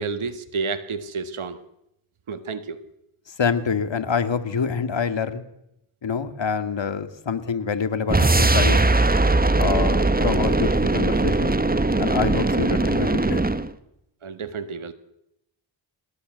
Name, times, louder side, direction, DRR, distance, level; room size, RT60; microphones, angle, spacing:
voice 1, 0.0-1.6 2.3-2.8 14.2-14.9, right 4 dB, 80° right, 10 dB, 1.7 m, -30 dB
voice 2, 3.4-5.4 6.0-8.8 9.6-11.6 12.0-13.4, left 6 dB, 60° left, 9 dB, 2.4 m, -26 dB
sound 1, 8.1-13.7, right 2 dB, 20° right, 1.4 m, -20 dB
27.0 x 18.5 x 8.1 m, 0.81 s
cardioid pair, 55°, 49 cm